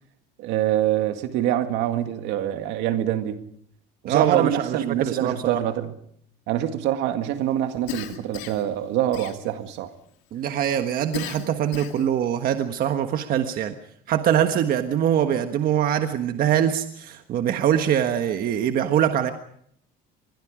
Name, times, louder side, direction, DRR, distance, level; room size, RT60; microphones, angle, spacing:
voice 1, 0.4-3.4 4.0-5.9 6.5-9.9, right 12 dB, 75° right, 2.0 m, -25 dB
voice 2, 4.0-5.6 10.3-13.7 14.1-19.3, right 10 dB, 50° right, 1.4 m, -23 dB
Cough, 7.9-8.7 9.1-9.8 11.1-12.1, left 12 dB, 80° left, 2.4 m, -35 dB
25.5 x 21.5 x 5.0 m
cardioid pair, 120°, 19 cm